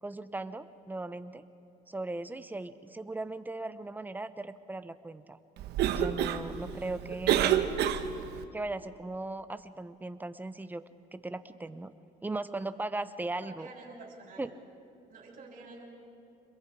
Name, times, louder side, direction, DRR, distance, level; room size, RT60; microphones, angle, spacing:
voice 1, 0.0-1.4 1.9-5.4 5.9-7.7 8.5-10.8 11.1-11.9 12.2-13.7 14.4-14.5, right 2 dB, 10° right, 12 dB, 0.8 m, -38 dB
Cough, 5.6-8.5, right 10 dB, 80° right, 1.1 m, -29 dB
voice 2, 13.4-14.5 15.1-15.8, right 3 dB, 50° right, -2 dB, 6.2 m, -49 dB
27.0 x 22.0 x 4.9 m, 2.5 s
cardioid pair, 110°, 17 cm